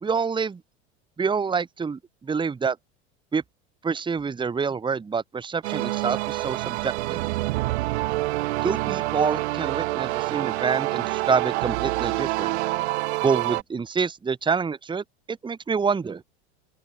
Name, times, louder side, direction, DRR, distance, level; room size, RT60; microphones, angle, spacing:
voice 1, 0.0-0.6 1.2-2.8 3.3-3.4 3.8-7.3 8.6-12.6 13.2-16.2, right 5 dB, 15° right, 1.1 m, -27 dB
sound 1, 5.6-13.6, right 19 dB, 75° right, 1.3 m, -27 dB
open air
hypercardioid pair, 105°, 33 cm